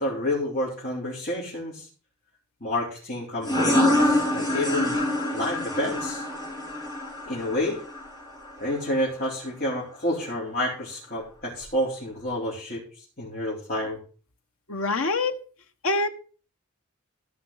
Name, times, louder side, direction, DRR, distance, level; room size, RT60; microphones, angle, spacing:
voice 1, 0.0-1.9 2.6-5.0 5.3-6.3 7.3-7.8 8.6-14.0, left 1 dB, 40° left, 4.2 m, -29 dB
sound 1, 3.4-8.8, left 1 dB, 20° left, 4.3 m, -26 dB
voice 2, 14.7-15.4 15.8-16.1, left 3 dB, 70° left, 1.2 m, -24 dB
15.0 x 5.9 x 5.7 m
head